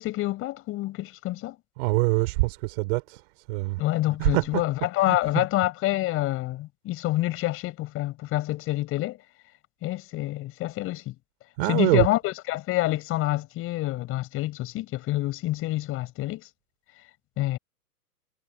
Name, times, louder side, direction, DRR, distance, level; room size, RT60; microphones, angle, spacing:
voice 1, 0.0-1.5 3.8-9.2 9.8-11.1 11.7-16.4 17.4-17.6, left 17 dB, 25° left, 6.4 m, -27 dB
voice 2, 1.8-3.8 4.2-4.6 5.1-5.4 11.6-12.1, right 24 dB, 40° right, 4.2 m, -25 dB
hypercardioid pair, 135°, 48 cm